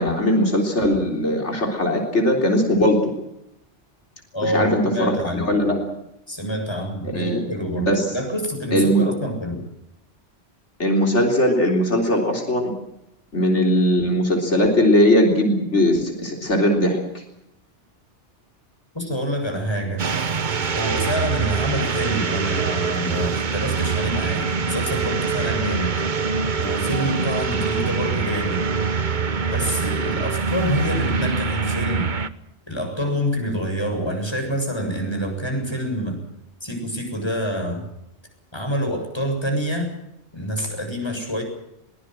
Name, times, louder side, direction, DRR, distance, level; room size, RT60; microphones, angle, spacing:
voice 1, 0.0-3.1 4.4-5.8 7.1-7.4 7.8-8.1 8.7-9.1 10.8-12.7 13.3-17.0, equal, 75° left, 2 dB, 4.0 m, -19 dB
voice 2, 4.3-5.5 6.3-9.6 18.9-20.1 20.8-25.9 26.6-28.7 29.5-32.1 32.7-36.2 36.6-37.9 38.5-39.9 40.3-41.4, equal, 20° left, 3 dB, 7.5 m, -27 dB
sound 1, 20.0-32.3, right 5 dB, 45° right, 1.1 m, -24 dB
22.5 x 21.5 x 7.7 m, 0.84 s
omnidirectional pair, 1.2 m